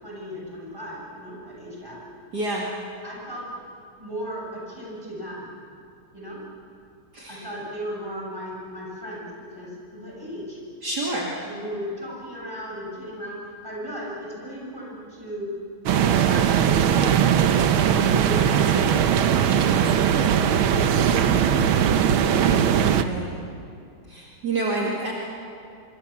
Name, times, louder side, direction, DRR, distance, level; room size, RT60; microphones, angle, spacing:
voice 1, 0.0-2.0 3.0-3.4 4.0-5.5 6.1-6.4 7.3-10.6 11.4-15.5 15.9-17.6 17.9-22.8, equal, 10° right, -4 dB, 7.3 m, -36 dB
voice 2, 2.3-2.7 7.1-7.4 10.8-11.3 22.9-23.3 24.1-25.1, right 2 dB, 50° right, -3 dB, 2.8 m, -28 dB
sound 1, 15.9-23.0, right 8 dB, 80° right, 1.8 m, -20 dB
25.5 x 25.5 x 7.4 m, 2.4 s
omnidirectional pair, 2.3 m